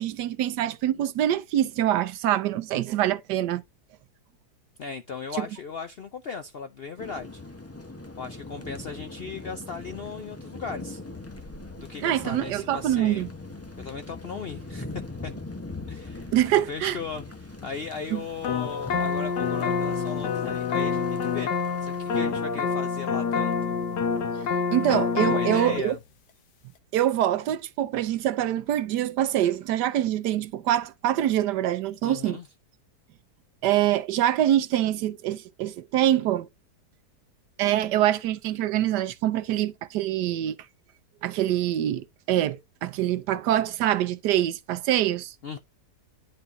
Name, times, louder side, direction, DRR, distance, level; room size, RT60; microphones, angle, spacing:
voice 1, 0.0-3.6 5.4-5.5 12.0-13.3 16.3-17.0 18.1-18.2 24.7-25.9 26.9-32.4 33.6-36.5 37.6-40.6 41.2-45.3, right 12 dB, 85° right, 1.3 m, -25 dB
voice 2, 4.8-7.4 8.2-11.0 11.8-13.3 13.8-15.3 15.9-23.8 25.2-26.0 32.0-32.5 45.4-45.6, left 5 dB, 65° left, 0.6 m, -37 dB
sound 1, 7.0-22.2, left 2 dB, 15° left, 0.6 m, -42 dB
sound 2, 18.4-25.8, left 5 dB, 80° left, 1.6 m, -27 dB
10.5 x 4.3 x 2.7 m
omnidirectional pair, 1.8 m